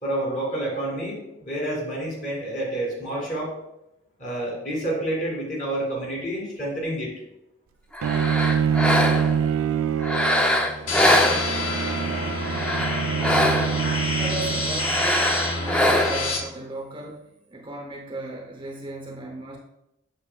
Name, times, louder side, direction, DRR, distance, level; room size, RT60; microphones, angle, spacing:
voice 1, 0.0-3.5 4.2-7.1, right 1 dB, 40° left, -3 dB, 2.5 m, -29 dB
sound 1, 7.9-9.4 10.0-11.9 12.4-13.9 14.8-16.4, left 1 dB, 5° left, 0.4 m, -23 dB
Bowed string instrument, 8.0-15.1, right 7 dB, 90° right, 0.3 m, -26 dB
sound 2, 10.9-16.4, left 2 dB, 80° left, 1.4 m, -27 dB
voice 2, 14.2-19.6, right 2 dB, 25° right, 1 dB, 0.7 m, -36 dB
7.2 x 6.6 x 2.2 m, 0.85 s
head